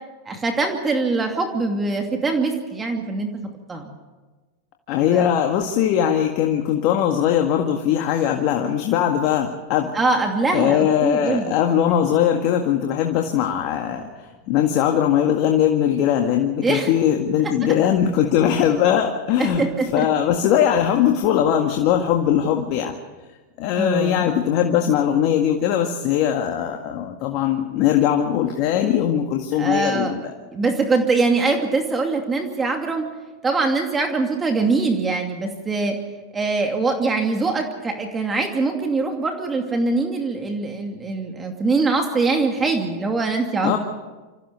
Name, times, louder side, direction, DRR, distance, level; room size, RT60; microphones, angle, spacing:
voice 1, 0.3-3.3 3.7-3.9 5.1-5.3 9.9-11.6 16.6-16.9 19.4-20.1 23.7-24.2 29.5-30.2 30.5-33.1 33.4-36.0 36.3-43.8, right 3 dB, 20° right, 4 dB, 2.6 m, -23 dB
voice 2, 4.9-9.9 10.5-19.6 19.9-22.9 23.6-30.3 43.6-43.8, left 9 dB, 50° left, 4 dB, 1.8 m, -20 dB
26.0 x 15.0 x 6.9 m, 1.3 s
hypercardioid pair, 105°, 0 cm